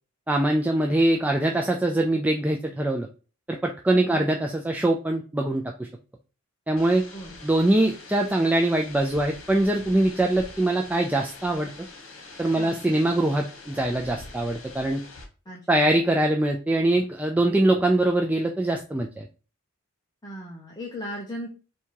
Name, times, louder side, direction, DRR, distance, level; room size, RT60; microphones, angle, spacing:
voice 1, 0.3-3.1 3.5-5.9 6.7-7.0 7.4-11.7 12.4-15.0 15.7-19.3, right 1 dB, 5° right, 2 dB, 0.3 m, -23 dB
voice 2, 3.9-4.2 7.1-7.4 12.6-12.8 15.5-15.8 20.2-21.5, equal, 20° left, -3 dB, 0.8 m, -37 dB
sound 1, 6.8-15.3, left 3 dB, 75° left, 1.3 m, -44 dB
3.5 x 2.8 x 4.5 m, 0.35 s
head